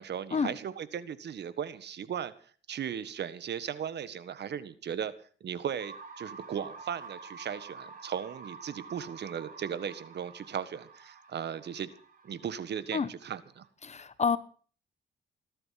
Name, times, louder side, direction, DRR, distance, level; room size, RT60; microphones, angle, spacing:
voice 1, 0.0-2.3 2.7-5.1 5.4-11.9 12.2-13.7, right 8 dB, 60° right, 14 dB, 1.6 m, -37 dB
sound 1, 5.8-13.6, right 4 dB, 40° right, 7.9 m, -49 dB
voice 2, 13.8-14.4, left 5 dB, 35° left, 15 dB, 1.3 m, -28 dB
19.0 x 12.0 x 5.9 m, 0.44 s
cardioid pair, 90°, 20 cm